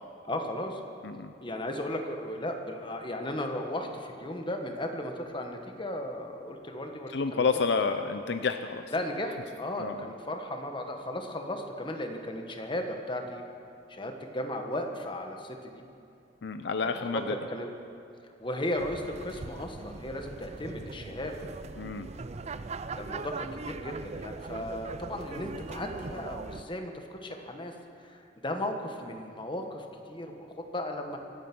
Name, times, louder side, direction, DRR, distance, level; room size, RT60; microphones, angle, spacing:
voice 1, 0.3-0.8 1.4-7.5 8.9-13.4 13.9-15.8 16.8-17.7 18.4-21.3 23.0-27.7 28.0-31.2, left 1 dB, 25° left, 4 dB, 1.4 m, -35 dB
voice 2, 7.1-8.8 9.8-10.1 16.4-17.4 21.8-22.1, left 4 dB, 65° left, 8 dB, 0.6 m, -29 dB
sound 1, 18.8-26.6, right 4 dB, 35° right, 0.5 m, -40 dB
25.0 x 9.2 x 6.1 m, 2.5 s
head